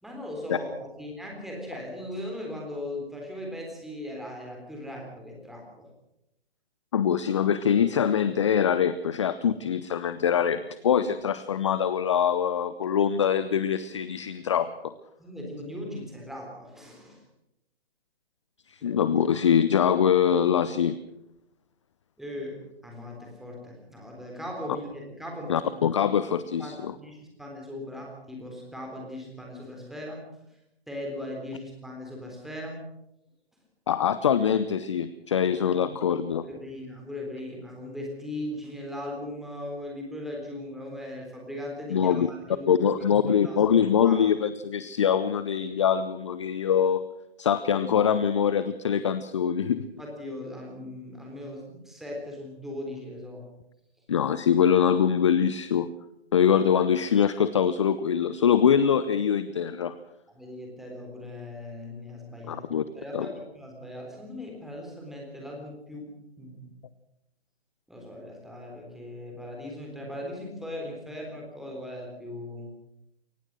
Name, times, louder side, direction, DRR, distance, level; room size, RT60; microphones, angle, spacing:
voice 1, 0.0-5.9 15.2-17.2 18.8-19.0 22.2-25.7 26.6-30.3 30.9-32.8 35.5-35.8 36.4-42.9 43.4-43.6 44.0-44.2 50.0-53.4 60.3-62.7 62.9-66.6 67.9-72.7, left 1 dB, ahead, 0 dB, 3.7 m, -39 dB
voice 2, 6.9-14.9 18.7-21.0 25.5-26.9 33.9-36.5 41.9-42.3 42.7-47.0 47.4-49.9 54.1-55.9 56.3-60.0 62.5-62.8 63.1-63.3, left 8 dB, 30° left, 14 dB, 0.6 m, -23 dB
23.0 x 19.0 x 6.3 m, 0.85 s
figure-of-eight pair, 145°, 31 cm